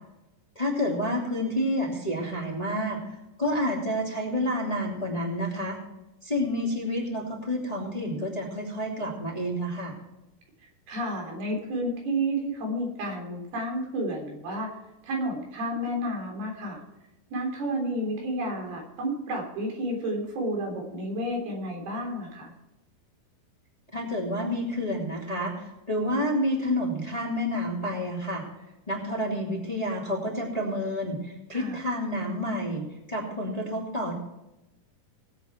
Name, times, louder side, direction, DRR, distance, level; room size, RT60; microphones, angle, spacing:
voice 1, 0.5-3.0 3.4-5.8 6.2-9.9 23.9-28.4 28.9-32.8 33.1-34.1, equal, 10° left, -2 dB, 2.4 m, -29 dB
voice 2, 10.9-14.7 15.0-16.8 17.3-22.5 31.5-31.8, right 1 dB, 90° right, 0 dB, 5.5 m, -31 dB
19.5 x 8.5 x 4.5 m, 0.95 s
omnidirectional pair, 4.4 m